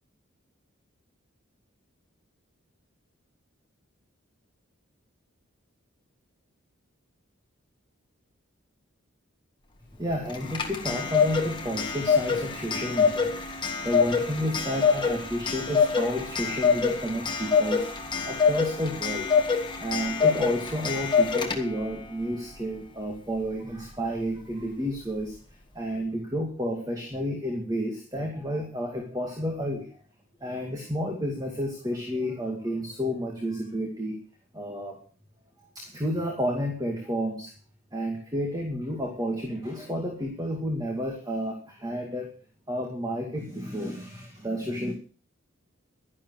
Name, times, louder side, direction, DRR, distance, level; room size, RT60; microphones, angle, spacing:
voice 1, 10.0-18.0 18.2-19.3 19.8-25.4 25.7-30.0 30.4-34.2 34.5-35.0 35.7-37.5 37.9-42.3 42.7-44.9, equal, 15° right, 1 dB, 2.2 m, -31 dB
Clock, 10.3-21.9, left 5 dB, 20° left, 1.7 m, -25 dB
12.0 x 11.0 x 6.4 m, 0.40 s
head